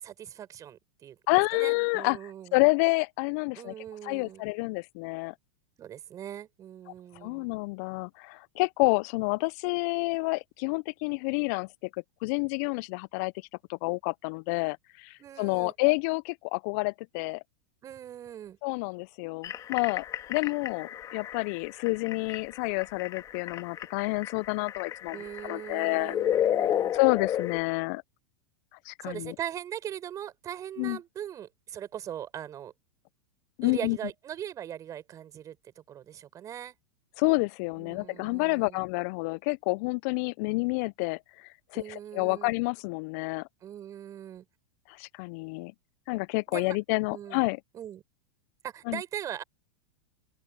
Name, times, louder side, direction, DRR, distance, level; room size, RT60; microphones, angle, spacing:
voice 1, 0.0-2.6 3.6-4.4 5.8-7.5 15.2-15.7 17.8-18.6 25.1-26.9 29.0-32.7 33.6-36.7 37.8-38.8 41.7-42.5 43.6-44.4 46.5-46.8 47.1-47.4 47.7-48.0 48.6-49.4, right 10 dB, 30° right, 6.7 m, -40 dB
voice 2, 1.3-2.2 2.5-3.7 4.0-5.3 7.2-11.9 12.2-13.3 13.7-17.4 18.6-25.2 25.4-26.1 26.9-28.0 28.8-29.3 30.8-31.0 33.6-34.0 37.2-43.5 44.9-45.7 46.1-47.6 48.9-49.0, left 30 dB, 50° left, 1.0 m, -29 dB
sound 1, 19.4-27.6, left 11 dB, 30° left, 2.4 m, -32 dB
open air
figure-of-eight pair, 90°, 11 cm